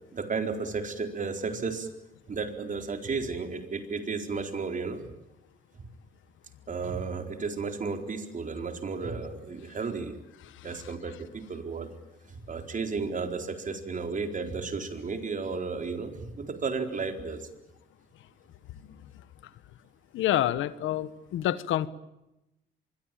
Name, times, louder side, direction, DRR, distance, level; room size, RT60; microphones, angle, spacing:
voice 1, 0.1-1.9 2.3-5.1 6.7-10.2 10.6-11.9 12.3-17.5, right 4 dB, 40° right, 6 dB, 4.3 m, -33 dB
voice 2, 20.1-21.9, left 12 dB, 80° left, 15 dB, 1.3 m, -28 dB
25.0 x 23.0 x 9.1 m, 0.93 s
cardioid pair, 90°, 20 cm